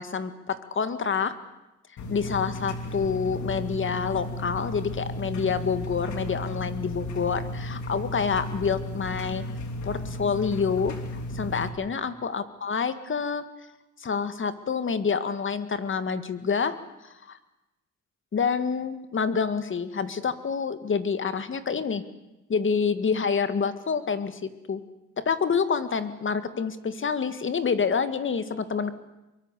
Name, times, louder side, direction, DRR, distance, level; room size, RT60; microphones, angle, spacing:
voice 1, 0.0-1.4 2.1-9.4 9.8-10.9 11.3-13.4 14.0-16.8 17.0-17.4 18.3-22.0 22.5-24.8 25.2-28.9, left 6 dB, 40° left, 11 dB, 1.9 m, -27 dB
sound 1, 2.0-11.7, left 1 dB, 70° left, 3.1 m, -34 dB
23.5 x 23.0 x 8.3 m, 0.99 s
cardioid pair, 90°, 30 cm